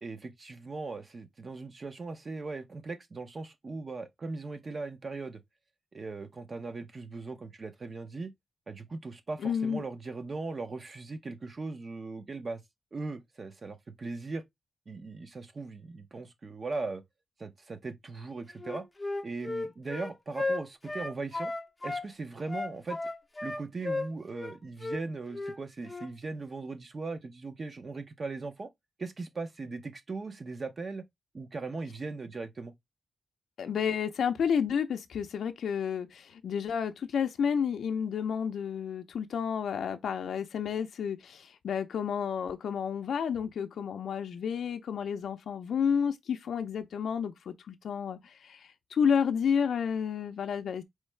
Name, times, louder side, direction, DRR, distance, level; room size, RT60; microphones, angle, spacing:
voice 1, 0.0-5.4 5.9-8.3 8.7-12.6 12.9-14.4 14.9-17.0 17.4-18.9 19.2-21.5 21.8-23.0 23.4-28.7 29.0-31.0 31.3-32.7, right 3 dB, 35° right, 0.5 m, -39 dB
voice 2, 9.4-9.8 33.6-50.8, left 7 dB, 75° left, 0.4 m, -31 dB
Wind instrument woodwind instrument, 18.6-22.0 22.5-24.5 24.8-25.0 25.3-25.6 25.9-26.1, left 2 dB, 15° left, 0.5 m, -34 dB
4.5 x 3.1 x 3.2 m
wide cardioid pair, 175°, 0 cm